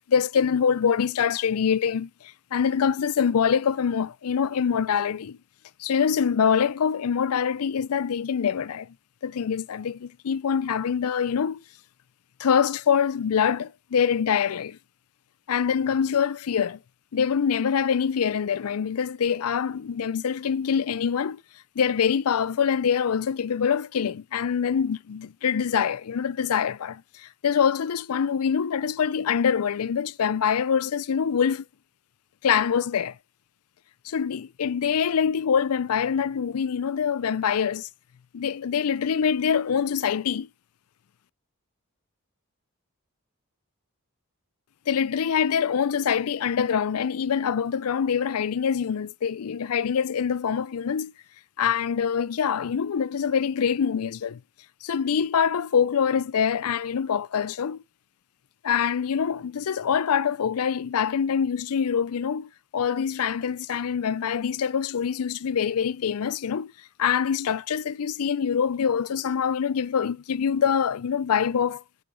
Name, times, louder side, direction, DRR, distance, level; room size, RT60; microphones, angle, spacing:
voice 1, 0.0-5.4 5.8-8.9 9.2-11.6 12.4-14.8 15.5-16.8 17.1-21.4 21.8-31.6 32.4-33.2 34.0-37.9 38.3-40.5 44.9-51.1 51.6-54.4 54.8-57.8 58.6-66.7 67.0-71.8, left 7 dB, 80° left, 0.4 m, -25 dB
7.0 x 7.0 x 5.0 m
head